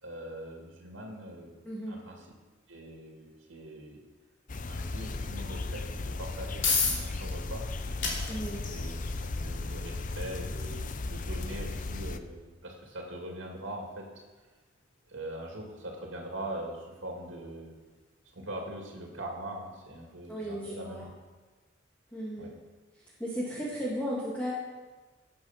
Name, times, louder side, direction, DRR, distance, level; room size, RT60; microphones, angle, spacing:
voice 1, 0.0-1.5 1.9-2.3 2.7-4.1 4.7-7.6 8.7-9.0 9.4-14.1 15.1-17.7 18.3-21.1 22.4-22.5, right 1 dB, 85° right, 1 dB, 2.2 m, -42 dB
voice 2, 1.6-2.0 8.3-8.6 20.3-21.1 22.1-22.5 23.2-24.5, equal, 5° left, -7 dB, 2.2 m, -35 dB
sound 1, 4.5-12.2, left 2 dB, 45° left, 0.6 m, -36 dB
sound 2, 6.6-21.0, left 4 dB, 70° left, 2.8 m, -39 dB
14.5 x 8.5 x 5.9 m, 1.3 s
head